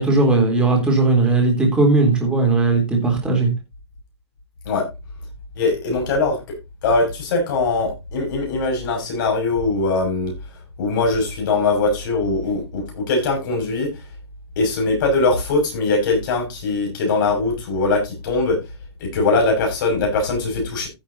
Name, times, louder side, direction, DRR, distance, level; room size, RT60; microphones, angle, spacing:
voice 1, 0.0-3.5, right 3 dB, 5° right, 0 dB, 3.5 m, -17 dB
voice 2, 5.6-6.4 6.8-10.3 10.8-13.9 14.6-18.6 19.0-20.9, left 3 dB, 45° left, 2 dB, 6.5 m, -21 dB
15.0 x 7.3 x 2.8 m, 0.24 s
hypercardioid pair, 155°, 15 cm